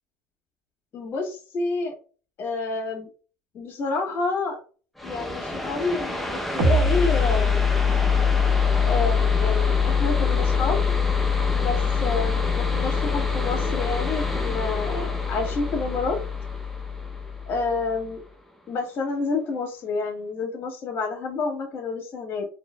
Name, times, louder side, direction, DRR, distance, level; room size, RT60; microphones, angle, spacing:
voice 1, 0.9-1.9 2.4-3.1 3.5-4.6 5.0-7.7 8.8-11.0 11.5-16.2 17.5-18.2 18.7-22.5, left 3 dB, 40° left, 0 dB, 1.5 m, -29 dB
sound 1, 5.0-18.3, left 1 dB, ahead, 0.6 m, -32 dB
sound 2, 6.6-17.9, left 6 dB, 80° right, 1.2 m, -24 dB
4.4 x 3.0 x 2.2 m, 0.38 s
cardioid pair, 125°, 6 cm